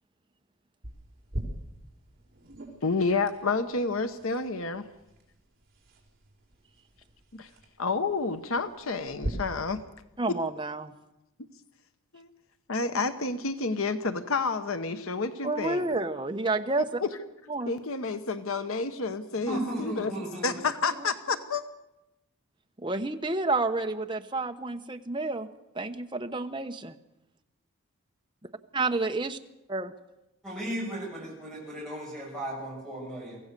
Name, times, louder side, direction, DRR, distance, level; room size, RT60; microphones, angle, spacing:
sound 1, 0.8-9.3, right 1 dB, 45° right, 4.8 m, -43 dB
voice 1, 2.8-4.9 7.3-7.5 7.8-9.8 10.3-10.4 12.1-12.3 12.7-15.9 17.0-17.1 17.7-20.1 20.4-21.6, left 4 dB, 75° left, 10 dB, 1.1 m, -29 dB
voice 2, 10.2-10.9 15.4-17.0 17.5-17.7 22.8-25.5 25.7-26.9 28.7-29.4 29.7-29.9, right 3 dB, 20° right, 5 dB, 1.0 m, -30 dB
voice 3, 19.5-20.6 30.4-33.4, right 1 dB, 5° left, -4 dB, 7.7 m, -35 dB
24.0 x 16.5 x 6.8 m, 0.93 s
head